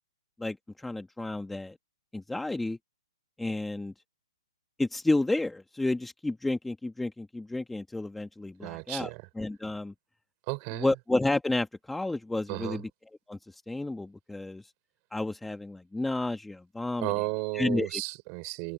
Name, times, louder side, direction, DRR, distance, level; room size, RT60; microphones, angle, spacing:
voice 1, 0.4-1.7 2.1-2.8 3.4-3.9 4.8-9.1 9.4-9.9 10.7-12.9 13.3-13.4 13.7-14.6 15.1-17.1 17.5-18.0, left 2 dB, 5° left, 1.1 m, -31 dB
voice 2, 8.6-9.2 10.5-10.9 12.5-12.8 17.0-18.7, right 32 dB, 30° right, 4.7 m, -33 dB
hypercardioid pair, 160°, 3 cm